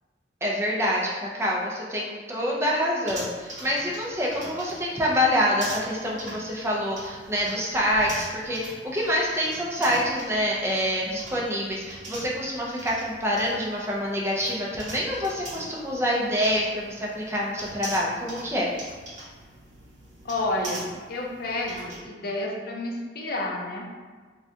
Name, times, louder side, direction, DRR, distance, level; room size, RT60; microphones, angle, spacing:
voice 1, 0.4-18.7, equal, 15° right, -4 dB, 0.5 m, -26 dB
sound 1, 3.0-22.0, right 1 dB, 45° right, 1.0 m, -42 dB
voice 2, 20.2-23.9, left 2 dB, 55° left, 0 dB, 0.5 m, -30 dB
3.6 x 2.2 x 2.7 m, 1.4 s
head